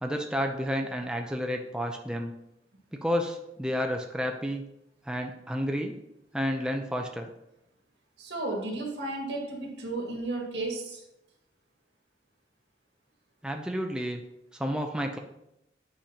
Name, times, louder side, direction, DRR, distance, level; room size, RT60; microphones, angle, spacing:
voice 1, 0.0-2.3 2.9-4.6 5.1-6.0 6.3-7.3 13.4-14.2 14.5-15.2, equal, 5° right, 3 dB, 0.4 m, -31 dB
voice 2, 8.2-11.0, right 2 dB, 90° right, 0 dB, 1.8 m, -33 dB
8.7 x 5.0 x 2.9 m, 0.85 s
head